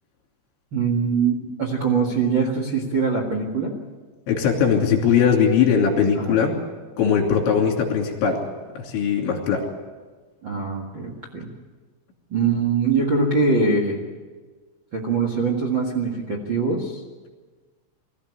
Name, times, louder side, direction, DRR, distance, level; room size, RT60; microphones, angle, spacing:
voice 1, 0.7-3.7 6.1-6.4 10.4-11.5 12.3-14.0 14.9-17.0, right 4 dB, 85° right, 0 dB, 1.0 m, -23 dB
voice 2, 4.3-6.6 7.0-8.4 8.8-9.7, left 7 dB, 70° left, 2 dB, 5.1 m, -20 dB
23.0 x 15.0 x 9.7 m, 1.4 s
omnidirectional pair, 5.7 m